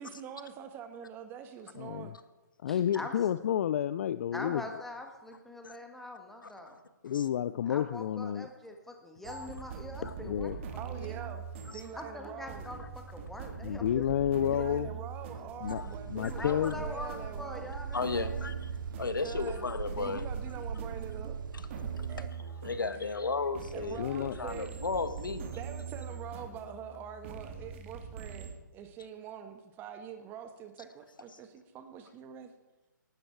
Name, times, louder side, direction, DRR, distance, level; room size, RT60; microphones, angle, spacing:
voice 1, 0.0-2.1 10.8-11.4 11.7-12.7 14.4-17.8 19.0-19.7 20.0-21.4 21.8-22.3 23.7-24.8 25.5-32.5, right 8 dB, 20° right, 1.4 m, -45 dB
voice 2, 1.8-2.2 2.6-4.6 7.0-8.5 10.2-10.6 13.6-14.9 15.6-15.8 16.1-16.8 24.0-24.4, left 10 dB, 45° left, 0.4 m, -30 dB
voice 3, 2.7-3.2 4.3-6.8 7.7-10.5 10.9-11.3 12.0-14.1 14.5-14.6 16.3-18.4, left 1 dB, 5° left, 1.7 m, -43 dB
voice 4, 6.4-6.8 7.1-7.3 9.2-9.5 10.0-10.1 11.0-11.1 11.7-11.8 15.7-15.9 16.2-16.5 17.9-18.7 19.0-20.2 21.5-21.7 22.2-22.3 22.6-25.5, left 4 dB, 85° left, 1.4 m, -35 dB
sound 1, 9.2-28.5, right 6 dB, 35° right, 2.4 m, -43 dB
sound 2, 15.6-22.3, right 6 dB, 75° right, 0.5 m, -40 dB
18.5 x 12.5 x 4.7 m
hypercardioid pair, 145°, 11 cm